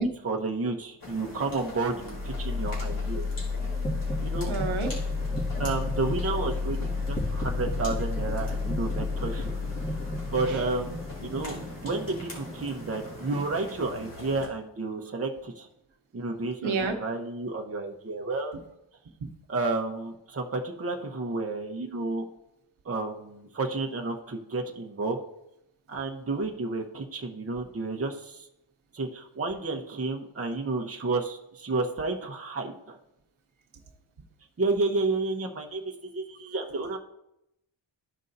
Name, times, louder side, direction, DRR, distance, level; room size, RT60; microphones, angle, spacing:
voice 1, 0.2-3.3 4.2-4.5 5.6-9.5 10.3-11.6 11.8-15.7 16.1-18.6 19.5-22.2 22.8-25.2 25.9-28.5 28.9-33.0 34.6-37.0, right 3 dB, 30° right, 1 dB, 1.0 m, -31 dB
sound 1, 1.0-14.5, left 2 dB, 45° left, 3.3 m, -43 dB
sound 2, 1.9-13.9, left 3 dB, 20° left, 2.2 m, -31 dB
voice 2, 4.5-4.9 16.6-16.9 19.2-19.3, right 4 dB, 85° right, 4 dB, 1.1 m, -28 dB
13.5 x 5.4 x 2.7 m, 0.84 s
wide cardioid pair, 105°, 47 cm